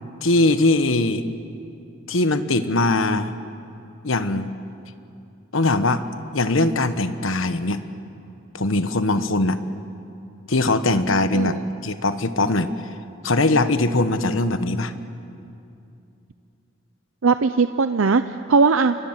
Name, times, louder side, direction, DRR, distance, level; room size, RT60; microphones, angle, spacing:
voice 1, 0.2-1.3 2.1-3.3 4.0-4.5 5.5-6.0 6.3-7.9 8.5-9.6 10.5-11.6 11.8-12.7 13.2-14.9, left 2 dB, 75° left, 11 dB, 1.2 m, -21 dB
voice 2, 17.2-18.9, right 4 dB, 80° right, 10 dB, 0.6 m, -19 dB
28.5 x 24.5 x 7.4 m, 2.6 s
head